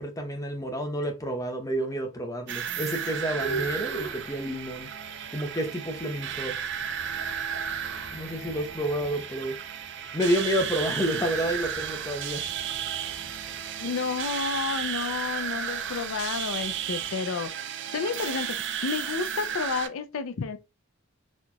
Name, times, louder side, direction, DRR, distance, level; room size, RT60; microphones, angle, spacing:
voice 1, 0.0-4.9 5.3-6.5 8.1-9.6 10.1-12.5, equal, 15° left, 0.8 m, -29 dB
sound 1, 2.5-19.9, right 8 dB, 60° right, 0.4 m, -33 dB
sound 2, 3.4-17.1, right 3 dB, 45° left, 1.5 m, -44 dB
voice 2, 13.8-17.5 17.9-18.6 18.8-20.6, left 5 dB, 80° left, 0.5 m, -31 dB
4.2 x 2.9 x 2.3 m
head